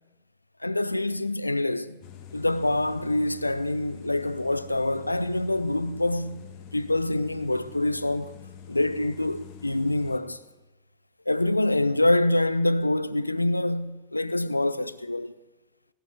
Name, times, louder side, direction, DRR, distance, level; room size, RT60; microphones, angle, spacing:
voice 1, 0.6-2.0 2.3-6.4 6.7-8.3 8.7-10.4 11.3-15.3, left 1 dB, 90° left, 0.4 m, -26 dB
sound 1, 2.0-10.2, left 7 dB, 45° left, 1.7 m, -45 dB
17.0 x 8.2 x 7.9 m
figure-of-eight pair, 80°, 0 cm